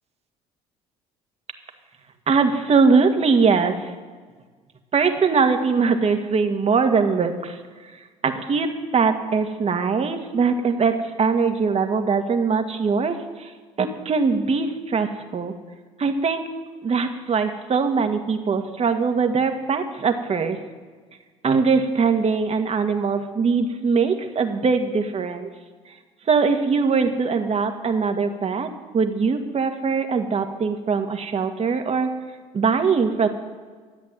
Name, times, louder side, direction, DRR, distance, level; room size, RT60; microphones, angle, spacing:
voice 1, 2.3-3.8 4.9-7.6 8.2-13.5 13.8-15.5 16.0-16.4 16.8-20.6 21.4-25.5 26.3-28.7 28.9-32.1 32.5-33.3, right 5 dB, 40° right, 6 dB, 1.8 m, -21 dB
13.5 x 8.1 x 9.3 m, 1.5 s
hypercardioid pair, 70°, 17 cm